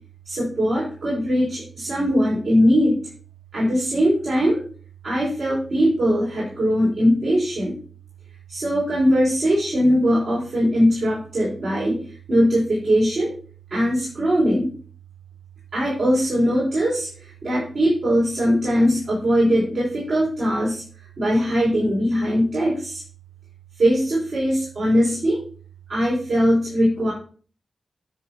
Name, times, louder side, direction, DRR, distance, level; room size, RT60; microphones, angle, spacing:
voice 1, 0.3-3.0 3.5-4.6 5.0-7.7 8.5-12.0 12.3-13.3 13.7-14.7 15.7-20.8 21.2-23.0 23.8-25.4 25.9-27.1, equal, 70° right, -8 dB, 4.6 m, -20 dB
9.9 x 3.9 x 6.0 m, 0.42 s
wide cardioid pair, 150°, 0 cm